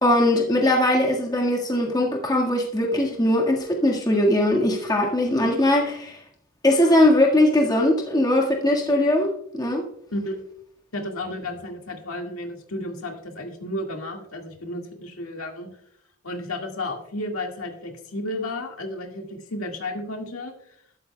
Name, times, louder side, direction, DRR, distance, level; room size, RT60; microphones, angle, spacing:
voice 1, 0.0-6.2 6.6-9.9, left 1 dB, 20° left, 1.7 m, -20 dB
voice 2, 10.1-10.4 10.9-15.7 16.2-20.8, left 1 dB, 85° left, 1.9 m, -32 dB
13.5 x 11.5 x 2.3 m
head